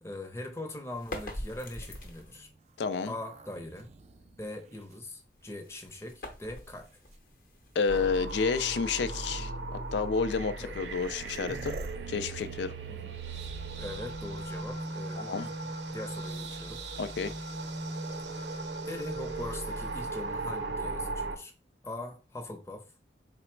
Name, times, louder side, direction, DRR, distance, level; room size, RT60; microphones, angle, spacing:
voice 1, 0.0-2.5 3.0-3.9 4.4-7.0 10.6-10.8 12.9-13.2 13.8-15.6 15.9-16.8 18.3-21.5 21.8-22.9, left 1 dB, 15° left, 0.5 m, -41 dB
sound 1, 0.9-2.5 5.2-8.2, left 1 dB, 50° left, 0.7 m, -44 dB
sound 2, 1.9-5.7 6.4-7.2 8.3-8.4 9.1-9.3 10.4-10.5 10.7-15.2 17.1-17.8, right 2 dB, 40° right, 0.3 m, -48 dB
voice 2, 2.8-3.1 7.8-11.8 12.1-12.7 15.2-15.5 17.0-17.3, left 5 dB, 80° left, 0.4 m, -30 dB
sound 3, 7.9-21.4, right 3 dB, 80° right, 0.6 m, -37 dB
3.9 x 2.0 x 4.4 m
head